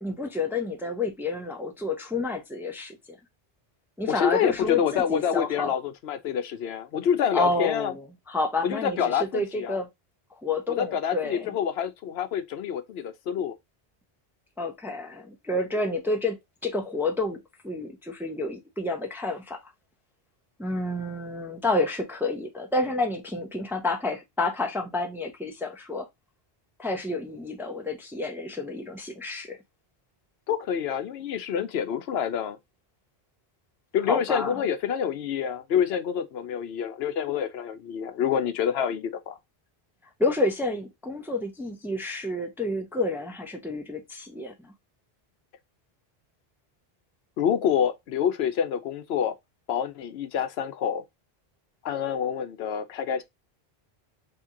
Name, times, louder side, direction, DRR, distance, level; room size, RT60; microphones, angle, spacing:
voice 1, 0.0-3.2 4.0-5.7 7.3-9.9 10.3-11.6 14.6-17.4 17.6-19.7 20.6-26.1 26.8-29.6 34.0-34.6 40.2-44.7, left 2 dB, 5° right, 0.5 m, -29 dB
voice 2, 4.1-7.9 8.6-9.8 10.7-13.5 30.5-32.6 33.9-39.4 47.4-49.3 49.7-51.0 51.8-53.2, left 8 dB, 85° left, 0.8 m, -27 dB
2.9 x 2.8 x 3.6 m
omnidirectional pair, 1.0 m